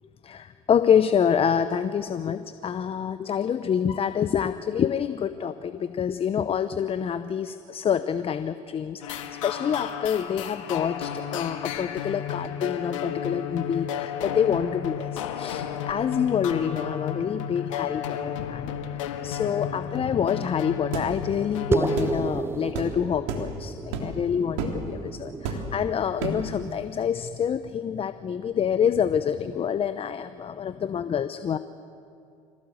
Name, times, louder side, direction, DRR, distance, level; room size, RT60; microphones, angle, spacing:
voice 1, 0.2-18.8 19.2-31.6, left 8 dB, 35° left, 11 dB, 0.9 m, -27 dB
sound 1, 9.0-22.2, left 8 dB, 80° left, 1.7 m, -33 dB
sound 2, 20.9-21.1 22.0-22.2 22.7-22.9 23.3-23.5 23.9-24.2 24.6-24.8 25.4-25.8 26.2-26.5, right 4 dB, 75° right, 3.4 m, -30 dB
sound 3, 21.7-26.5, right 4 dB, 15° right, 0.5 m, -31 dB
26.0 x 17.5 x 7.8 m, 2.5 s
hypercardioid pair, 75°, 16 cm